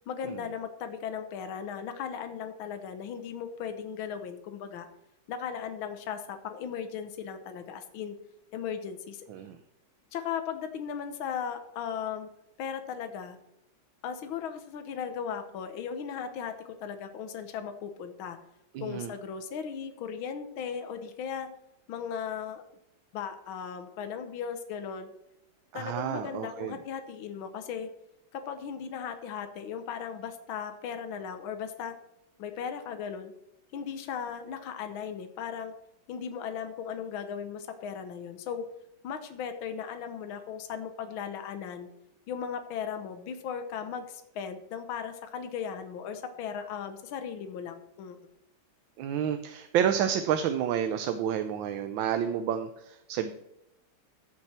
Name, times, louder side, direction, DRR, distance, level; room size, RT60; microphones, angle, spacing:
voice 1, 0.1-4.9 5.3-8.2 8.5-9.3 10.1-12.3 12.6-13.4 14.0-16.5 16.8-18.4 18.8-21.5 21.9-22.6 23.1-25.1 25.7-27.9 28.3-31.9 32.4-33.3 33.7-35.7 36.1-38.6 39.0-41.9 42.3-48.2, left 7 dB, 80° left, 7 dB, 1.8 m, -37 dB
voice 2, 18.7-19.1 25.7-26.7 49.0-53.3, right 9 dB, 75° right, 8 dB, 1.4 m, -30 dB
14.5 x 6.8 x 4.3 m, 0.86 s
omnidirectional pair, 2.2 m